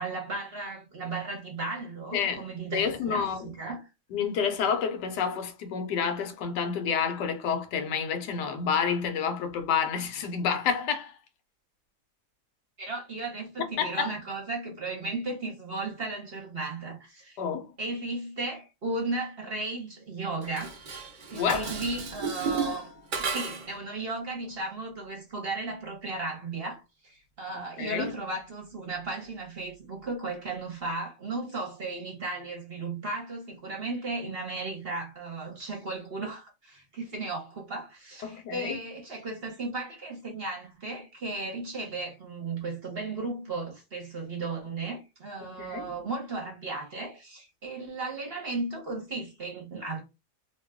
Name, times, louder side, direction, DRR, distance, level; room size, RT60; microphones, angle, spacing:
voice 1, 0.0-3.8 12.8-17.4 17.8-20.8 21.3-22.9 23.2-50.0, right 3 dB, 45° right, 0.9 m, -35 dB
voice 2, 2.1-2.5 2.7-3.5 4.1-11.2 13.8-14.1 17.4-17.7 21.3-21.7 27.8-28.1 38.2-38.8 45.4-45.9, left 6 dB, 85° left, 1.3 m, -29 dB
Dishes pots and pans, 20.4-23.8, right 4 dB, 70° right, 0.4 m, -34 dB
3.0 x 2.2 x 3.5 m
omnidirectional pair, 1.8 m